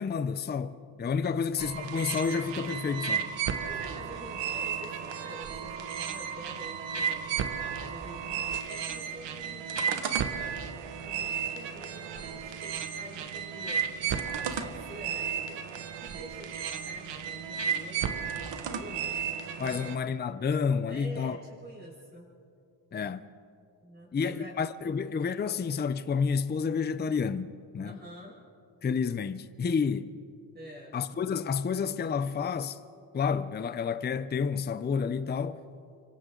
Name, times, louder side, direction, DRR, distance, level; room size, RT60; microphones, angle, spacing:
voice 1, 0.0-3.3 19.6-21.4 22.9-23.2 24.1-27.5 27.7-28.0 28.8-30.1 30.9-32.8 33.1-35.6, left 6 dB, 20° left, 0.6 m, -30 dB
sound 1, 1.6-19.9, right 7 dB, 65° right, 1.5 m, -34 dB
voice 2, 3.6-10.5 11.0-14.0 14.3-15.7 16.0-19.2 19.6-20.0 20.8-22.3 23.8-24.6 24.8-24.9 27.8-28.4 30.5-31.0, equal, 20° right, 7.1 m, -47 dB
30.0 x 25.0 x 3.9 m
cardioid pair, 120°, 47 cm